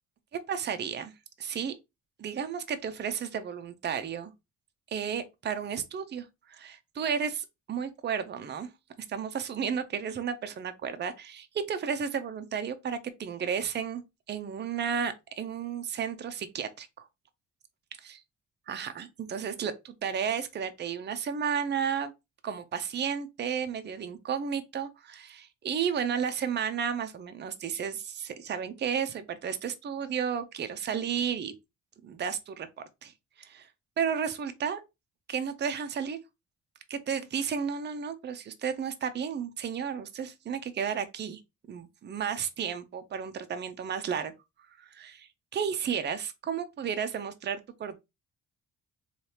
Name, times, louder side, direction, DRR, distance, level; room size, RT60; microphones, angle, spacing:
voice 1, 0.5-1.1 1.4-1.7 2.2-4.3 4.9-8.7 9.1-14.0 14.3-17.1 18.0-18.2 18.7-22.1 22.4-31.5 32.0-32.7 33.0-33.1 33.4-33.7 34.0-34.8 35.3-36.2 36.9-41.4 41.7-44.3 44.8-48.0, right 7 dB, 35° right, 0.5 m, -33 dB
3.2 x 2.4 x 2.8 m
cardioid pair, 90°, 30 cm